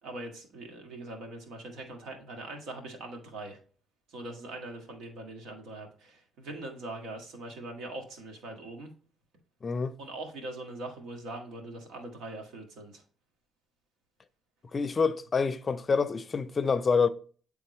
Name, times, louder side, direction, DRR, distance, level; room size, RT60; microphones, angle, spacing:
voice 1, 0.0-3.6 4.1-8.9 10.0-13.0, right 2 dB, 85° right, 1.6 m, -42 dB
voice 2, 9.6-10.0 14.7-17.1, left 5 dB, 35° left, 0.5 m, -27 dB
8.7 x 3.6 x 3.0 m
cardioid pair, 90°, 0 cm